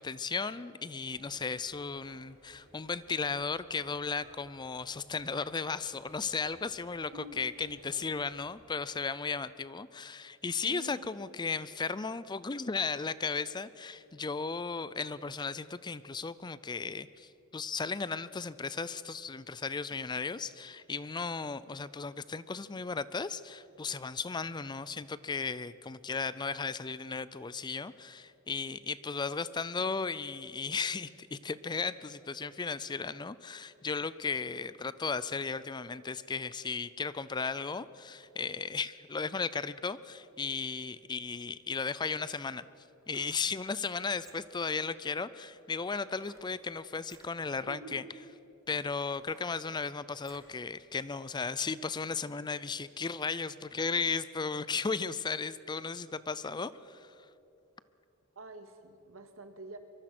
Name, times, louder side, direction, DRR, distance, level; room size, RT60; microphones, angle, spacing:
voice 1, 0.0-42.6 43.1-48.0 48.7-57.3, left 4 dB, 20° left, 16 dB, 0.4 m, -35 dB
sound 1, 1.0-8.6, right 1 dB, 35° right, 4.2 m, -61 dB
voice 2, 10.6-11.1 47.7-48.0 58.4-59.8, right 2 dB, 75° right, 7 dB, 2.0 m, -47 dB
sound 2, 42.9-43.6 44.1-44.7 46.1-46.5 47.0-47.3 48.0-48.1 48.7-50.6 51.0-51.1, right 2 dB, 15° right, 2.6 m, -60 dB
24.0 x 23.0 x 6.1 m, 2.9 s
head